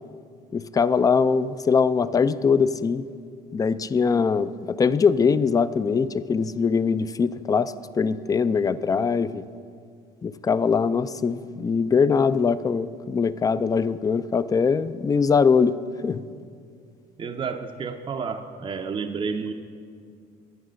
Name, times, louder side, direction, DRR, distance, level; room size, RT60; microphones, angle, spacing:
voice 1, 0.5-3.0 3.5-9.4 10.2-15.7 16.0-16.2, left 5 dB, 20° left, 15 dB, 0.3 m, -22 dB
voice 2, 17.2-19.5, right 5 dB, 30° right, 4 dB, 0.5 m, -30 dB
11.0 x 9.2 x 6.3 m, 2.2 s
cardioid pair, 110°, 17 cm